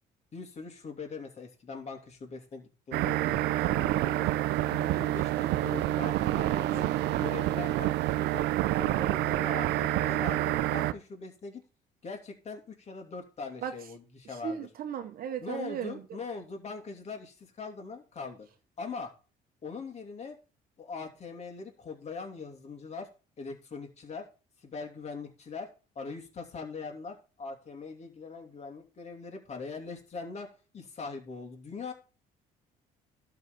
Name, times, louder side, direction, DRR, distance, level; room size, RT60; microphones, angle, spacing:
voice 1, 0.3-4.3 4.6-8.4 8.8-11.6 12.0-14.7 15.4-18.5 18.8-19.1 19.6-20.4 20.8-23.1 23.4-24.3 24.6-25.7 25.9-30.5 30.7-31.9, left 4 dB, 40° left, 2.8 m, -41 dB
sound 1, 2.9-10.9, right 15 dB, 85° right, 0.6 m, -28 dB
voice 2, 14.2-16.2, right 8 dB, 60° right, 1.0 m, -36 dB
12.0 x 4.0 x 6.9 m
cardioid pair, 110°, 17 cm